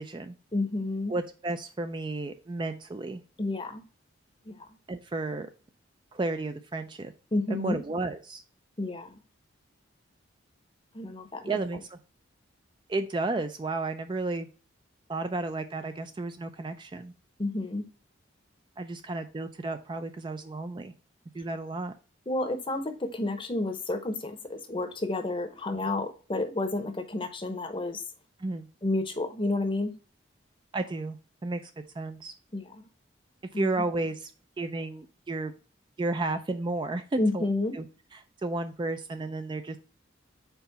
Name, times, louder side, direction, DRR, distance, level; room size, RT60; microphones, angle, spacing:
voice 1, 0.0-0.3 1.1-3.2 4.9-5.5 6.1-7.1 7.5-8.4 11.5-12.0 12.9-14.5 15.1-17.1 18.8-20.9 21.3-21.9 28.4-28.7 30.7-31.2 31.4-31.7 32.0-32.3 33.5-34.3 34.6-35.5 36.0-37.4 37.8-37.9 38.4-39.8, right 2 dB, 25° right, 8 dB, 0.3 m, -32 dB
voice 2, 0.5-1.1 3.4-3.8 4.4-4.7 7.3-7.8 8.8-9.1 10.9-11.6 17.4-17.8 22.3-28.0 28.8-29.9 32.5-32.9 33.5-33.8 37.2-37.8, left 2 dB, 25° left, 8 dB, 0.7 m, -30 dB
4.6 x 4.0 x 5.2 m, 0.36 s
head